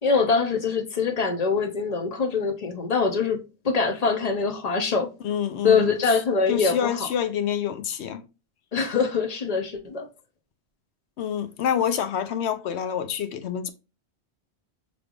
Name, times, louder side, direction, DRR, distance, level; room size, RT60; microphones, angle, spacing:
voice 1, 0.0-5.1 5.6-7.1 8.7-10.1, left 5 dB, 40° left, 0.7 m, -24 dB
voice 2, 5.2-6.2 6.5-8.2 11.2-13.7, left 9 dB, 90° left, 0.9 m, -27 dB
5.1 x 3.2 x 2.4 m
omnidirectional pair, 1.1 m